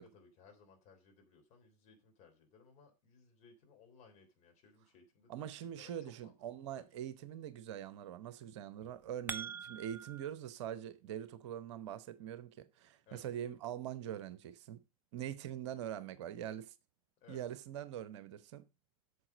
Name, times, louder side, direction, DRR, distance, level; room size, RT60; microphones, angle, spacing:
voice 1, 0.0-5.5 5.8-6.3 6.7-6.9 13.1-13.3 17.2-17.4, left 5 dB, 40° left, 3.6 m, -62 dB
voice 2, 5.3-14.8 15.1-16.7 17.3-18.6, right 10 dB, 50° right, 0.9 m, -43 dB
sound 1, 8.8-10.3, right 6 dB, 10° right, 0.6 m, -44 dB
8.8 x 6.9 x 5.0 m
figure-of-eight pair, 85°, 19 cm